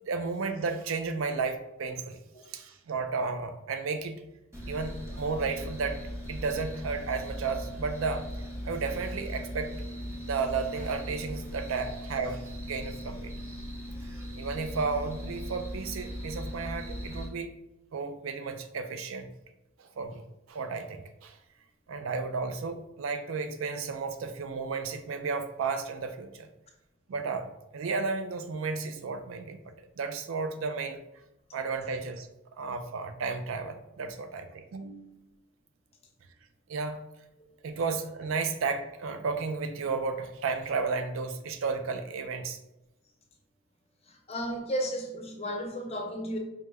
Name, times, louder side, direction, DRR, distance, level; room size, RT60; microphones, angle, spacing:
voice 1, 0.1-2.2 2.5-4.2 4.7-6.0 6.3-8.3 8.6-9.7 10.2-12.4 12.7-13.3 14.4-17.5 17.9-19.3 19.8-21.4 21.9-26.5 27.1-31.0 31.5-32.3 32.6-35.2 36.7-37.0 37.6-42.6, right 4 dB, 85° right, 0.4 m, -33 dB
sound 1, 4.5-17.3, equal, 15° right, 0.8 m, -39 dB
voice 2, 44.1-46.4, equal, 30° left, 0.7 m, -34 dB
4.8 x 2.1 x 3.3 m
head